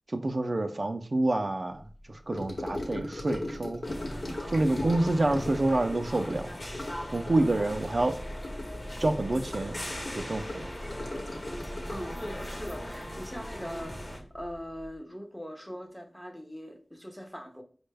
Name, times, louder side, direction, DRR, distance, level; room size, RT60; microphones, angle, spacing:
voice 1, 0.1-1.8 2.1-3.8 4.5-6.6 7.1-8.2 9.0-9.8 10.2-10.7, right 2 dB, 55° right, 0.3 m, -28 dB
Gurgling / Sink (filling or washing) / Trickle dribble, 2.3-14.0 14.2-14.6 14.8-14.9, left 1 dB, 65° left, 0.8 m, -38 dB
sound 1, 3.8-14.2, equal, 40° left, 0.8 m, -39 dB
voice 2, 11.9-17.6, equal, 5° left, 0.5 m, -41 dB
4.3 x 2.1 x 3.3 m
wide cardioid pair, 70°, 0 cm